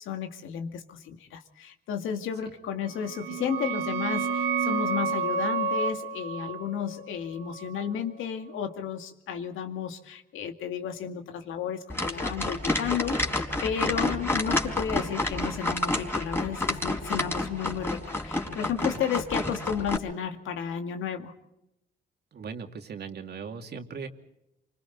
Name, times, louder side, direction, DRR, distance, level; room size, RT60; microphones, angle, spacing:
voice 1, 0.0-21.3, left 8 dB, 85° left, 5 dB, 2.2 m, -33 dB
sound 1, 2.9-8.3, right 5 dB, 75° right, 1.7 m, -31 dB
sound 2, 11.9-20.0, left 1 dB, 10° left, 4.3 m, -29 dB
voice 2, 22.3-24.1, right 5 dB, 55° right, 5 dB, 2.6 m, -38 dB
28.5 x 25.5 x 4.1 m, 0.89 s
cardioid pair, 90°, 20 cm